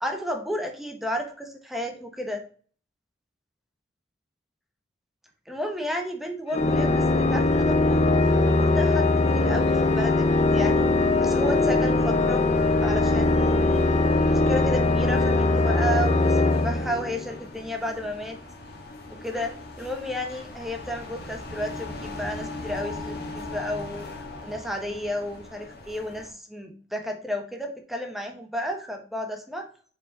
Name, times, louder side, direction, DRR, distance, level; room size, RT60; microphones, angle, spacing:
voice 1, 0.0-2.4 5.5-8.1 8.4-10.8 11.2-12.5 12.8-18.4 19.1-29.7, equal, ahead, 3 dB, 1.1 m, -32 dB
Organ, 6.5-17.4, left 2 dB, 40° left, 0.6 m, -21 dB
sound 1, 8.2-26.3, left 2 dB, 60° left, 1.5 m, -41 dB
5.2 x 4.7 x 4.1 m, 0.42 s
head